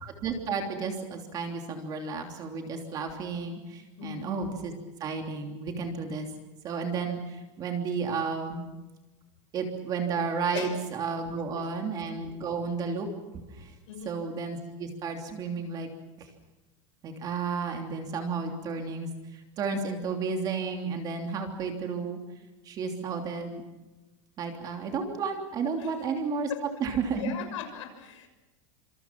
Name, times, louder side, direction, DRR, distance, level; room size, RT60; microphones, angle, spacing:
voice 1, 0.0-4.7 5.0-6.3 6.6-8.7 9.5-13.1 13.5-13.7 14.0-15.9 16.2-16.3 17.0-22.2 22.6-23.6 24.4-26.5 26.8-27.3, right 5 dB, 25° right, 3 dB, 3.2 m, -32 dB
voice 2, 13.9-14.2 25.8-25.9 26.5-26.6 27.1-28.3, left 8 dB, 70° left, 7 dB, 6.5 m, -38 dB
27.0 x 27.0 x 6.0 m, 1.1 s
supercardioid pair, 175°, 16 cm